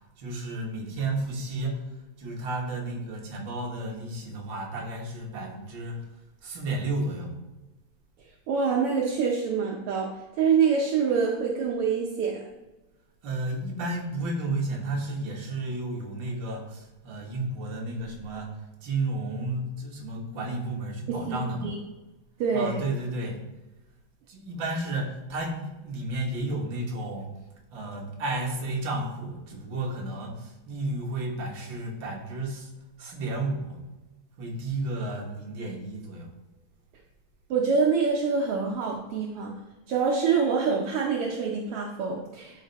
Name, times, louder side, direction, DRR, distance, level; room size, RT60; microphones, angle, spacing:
voice 1, 0.2-1.8 2.2-6.0 6.4-7.3 13.2-21.7 22.5-23.4 24.3-27.3 27.7-32.7 33.0-33.8 34.4-36.3, right 2 dB, 50° right, -1 dB, 1.7 m, -32 dB
voice 2, 8.5-12.5 21.1-21.8 22.4-22.8 37.5-39.5 39.9-42.6, right 5 dB, 70° right, -1 dB, 1.4 m, -26 dB
11.0 x 4.3 x 4.1 m, 1.1 s
omnidirectional pair, 3.3 m